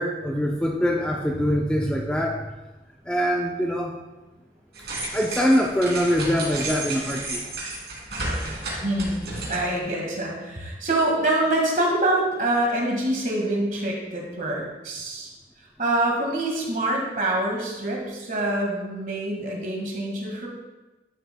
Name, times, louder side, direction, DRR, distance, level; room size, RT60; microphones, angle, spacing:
voice 1, 0.0-2.4 3.1-3.9 5.1-7.4, equal, 5° left, 0 dB, 0.5 m, -23 dB
sound 1, 4.7-9.8, right 2 dB, 70° right, 2.5 m, -32 dB
voice 2, 8.8-15.3 15.8-20.5, right 1 dB, 45° right, -1 dB, 1.7 m, -25 dB
11.0 x 7.0 x 2.2 m, 1.1 s
head